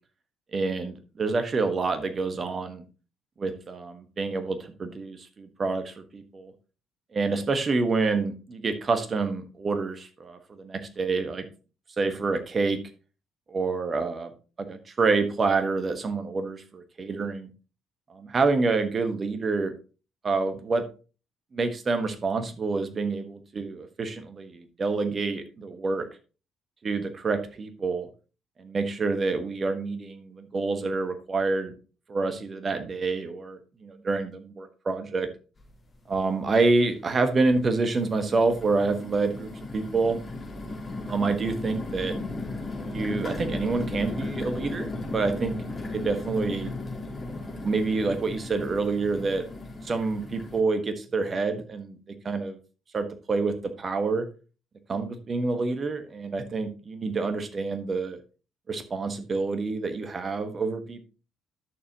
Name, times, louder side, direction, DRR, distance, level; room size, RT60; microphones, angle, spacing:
voice 1, 0.5-2.8 3.4-6.5 7.1-11.4 12.0-12.8 13.5-14.3 14.7-17.5 18.1-19.7 20.2-20.8 21.5-26.1 26.8-28.1 28.6-31.7 32.1-35.3 36.1-40.2 41.1-42.2 42.8-45.6 45.9-46.7 47.4-49.4 49.8-52.6 52.9-54.2 54.9-58.2 58.7-61.1, right 3 dB, 40° right, 8 dB, 1.4 m, -27 dB
sound 1, 35.6-35.7 36.1-36.8 37.4-50.6, left 2 dB, 25° left, 3.7 m, -36 dB
11.0 x 6.8 x 2.9 m, 0.34 s
figure-of-eight pair, 50°, 0 cm